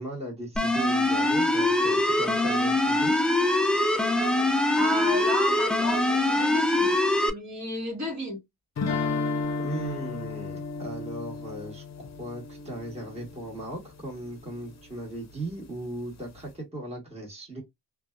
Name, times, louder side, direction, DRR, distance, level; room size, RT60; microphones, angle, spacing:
voice 1, 0.0-3.2 9.6-11.8 12.2-17.6, right 1 dB, 15° right, 1.3 m, -37 dB
sound 1, 0.6-7.3, left 2 dB, ahead, 0.3 m, -23 dB
voice 2, 4.7-7.0 7.3-8.4, equal, 40° right, 1.3 m, -32 dB
sound 2, 8.8-13.7, left 4 dB, 40° left, 0.7 m, -33 dB
2.5 x 2.2 x 2.2 m
cardioid pair, 80°, 43 cm